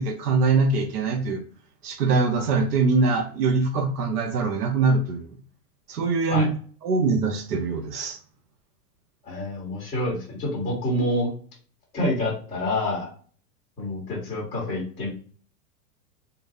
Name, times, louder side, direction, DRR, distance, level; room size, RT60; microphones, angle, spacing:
voice 1, 0.0-1.4 1.8-5.3 5.9-6.5 6.8-8.2, right 4 dB, 80° right, 4 dB, 1.0 m, -23 dB
voice 2, 9.2-11.3 11.9-13.1 13.8-15.1, left 1 dB, 10° left, -7 dB, 1.1 m, -27 dB
3.8 x 2.6 x 2.6 m, 0.43 s
supercardioid pair, 175°, 47 cm